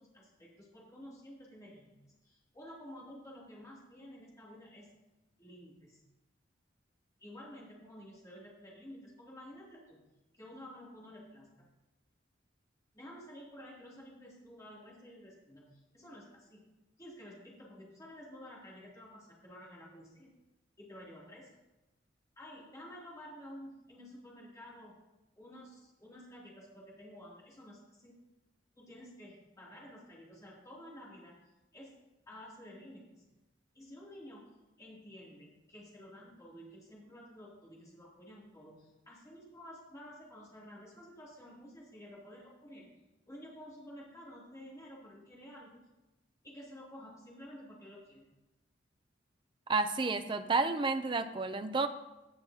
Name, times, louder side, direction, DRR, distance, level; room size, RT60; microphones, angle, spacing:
voice 1, 0.0-2.0 2.2-4.9 5.4-6.0 7.2-10.0 10.3-11.6 12.9-16.6 17.0-20.3 20.8-21.6 22.4-24.9 25.4-28.2 28.7-31.3 31.7-32.0 32.3-33.2 33.7-34.4 34.8-42.9 43.3-45.8 46.4-48.3, equal, 20° left, -6 dB, 2.8 m, -51 dB
voice 2, 49.7-51.9, right 3 dB, 25° right, 9 dB, 0.5 m, -31 dB
17.0 x 6.2 x 2.8 m, 1.0 s
head